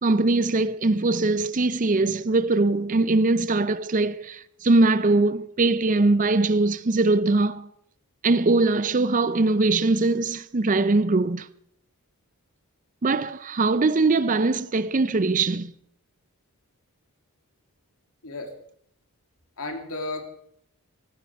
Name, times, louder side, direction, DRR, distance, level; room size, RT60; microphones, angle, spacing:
voice 1, 0.0-7.7 8.2-11.5 13.0-15.7, right 3 dB, 35° right, 0.5 m, -21 dB
voice 2, 19.6-20.3, left 2 dB, 70° left, 2.6 m, -33 dB
17.5 x 15.5 x 4.7 m
head